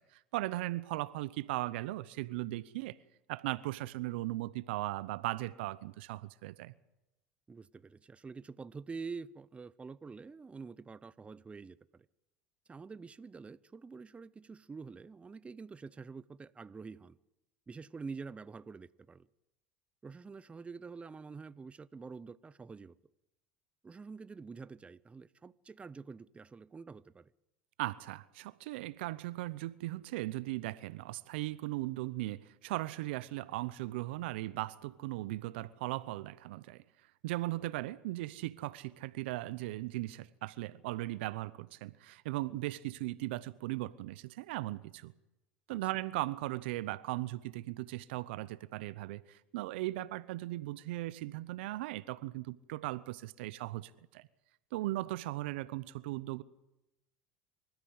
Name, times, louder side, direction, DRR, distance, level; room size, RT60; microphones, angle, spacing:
voice 1, 0.0-3.0 3.3-6.7 27.8-36.8 37.2-45.1 45.7-54.3 54.7-56.4, right 18 dB, 75° right, 0.8 m, -38 dB
voice 2, 7.5-12.1 12.7-17.2 17.7-19.3 20.0-23.0 23.8-27.3 45.7-45.8, right 4 dB, 20° right, 0.6 m, -47 dB
25.5 x 14.0 x 8.0 m
hypercardioid pair, 85°, 6 cm